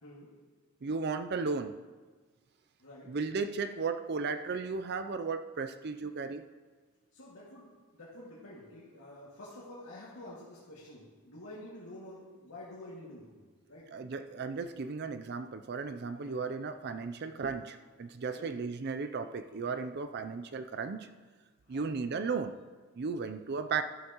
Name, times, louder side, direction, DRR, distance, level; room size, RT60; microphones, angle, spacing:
voice 1, 0.8-1.8 3.1-6.4 13.9-21.1 21.7-22.6 22.9-23.8, right 4 dB, 45° right, 0.4 m, -35 dB
voice 2, 2.8-3.1 7.1-13.4 13.7-13.9 16.1-16.4 18.4-18.6 21.7-22.0, left 1 dB, 75° left, 2.1 m, -49 dB
13.0 x 11.5 x 3.0 m
head